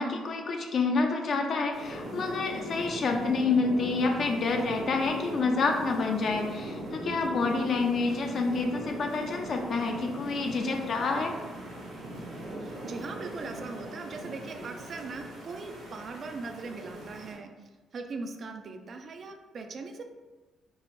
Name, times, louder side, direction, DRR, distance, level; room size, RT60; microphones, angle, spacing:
voice 1, 0.0-11.3, left 4 dB, 55° left, 3 dB, 0.4 m, -28 dB
sound 1, 1.7-17.3, right 1 dB, 75° right, 1.3 m, -40 dB
voice 2, 12.6-17.5 17.9-20.0, right 3 dB, 50° right, 5 dB, 0.4 m, -40 dB
4.5 x 2.0 x 3.0 m, 1.2 s
cardioid pair, 85°, 0 cm